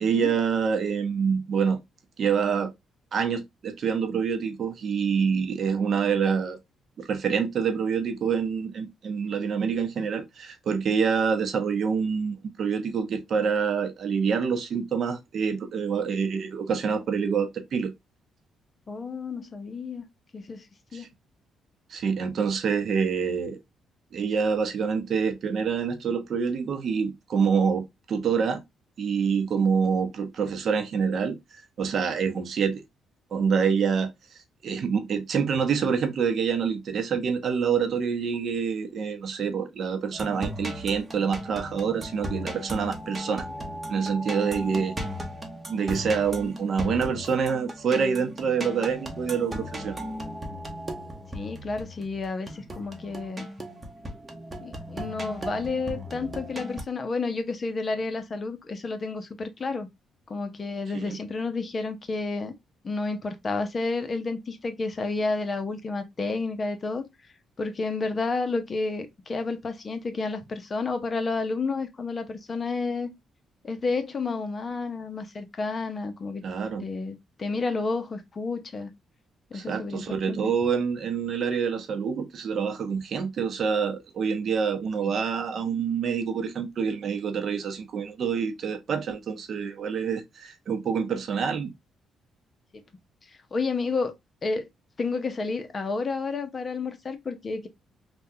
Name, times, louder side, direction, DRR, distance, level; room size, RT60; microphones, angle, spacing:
voice 1, 0.0-1.8 2.2-2.7 3.1-6.6 7.0-17.9 20.9-21.1 21.9-23.6 24.1-28.6 29.0-31.4 31.8-32.8 33.3-43.5 43.9-45.0 45.7-50.0 60.9-61.2 76.4-76.8 79.5-91.7, right 6 dB, 55° right, 0.7 m, -26 dB
voice 2, 18.9-20.0 20.3-20.7 20.9-21.1 51.3-53.5 54.6-59.9 60.3-62.5 62.8-67.1 67.6-73.1 73.6-76.4 76.8-78.9 79.5-80.5 93.5-94.1 94.4-94.7 95.0-97.7, left 3 dB, 35° left, 0.7 m, -30 dB
sound 1, 40.1-56.8, equal, 20° right, 0.9 m, -37 dB
3.4 x 2.3 x 2.7 m
cardioid pair, 90°, 0 cm